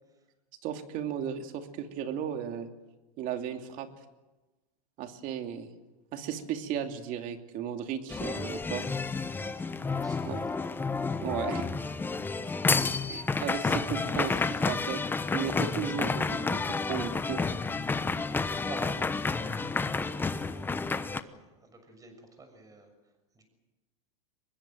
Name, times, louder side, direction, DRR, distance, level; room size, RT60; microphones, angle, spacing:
voice 1, 0.6-2.7 3.2-3.9 5.0-5.7 6.1-8.8 10.3-10.4 11.2-11.7 13.1-15.0 15.3-17.4, right 9 dB, 45° right, 6 dB, 2.7 m, -35 dB
sound 1, 8.1-21.2, left 4 dB, 10° left, 0.9 m, -30 dB
voice 2, 9.4-10.3 12.4-12.6 15.6-15.8 18.6-23.4, right 2 dB, 20° right, 6 dB, 6.6 m, -49 dB
24.5 x 20.5 x 7.7 m, 1.1 s
supercardioid pair, 125°, 19 cm